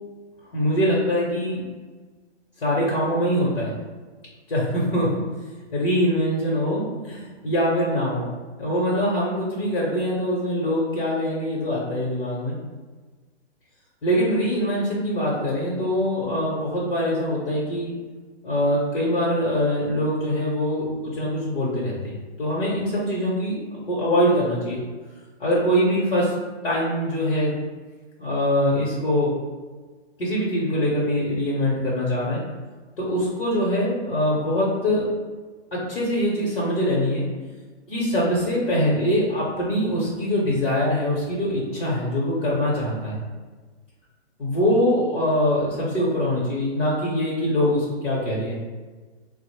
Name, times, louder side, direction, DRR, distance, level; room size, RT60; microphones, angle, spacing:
voice 1, 0.5-1.7 2.6-3.8 4.5-5.2 5.7-8.3 8.6-12.6 14.0-17.9 18.4-22.1 22.4-24.8 25.4-26.3 26.6-27.5 28.2-29.3 30.2-32.4 33.0-35.1 35.7-37.2 37.9-43.2 44.4-48.6, equal, 55° left, -5 dB, 0.8 m, -23 dB
3.5 x 2.0 x 3.1 m, 1.4 s
hypercardioid pair, 180°, 34 cm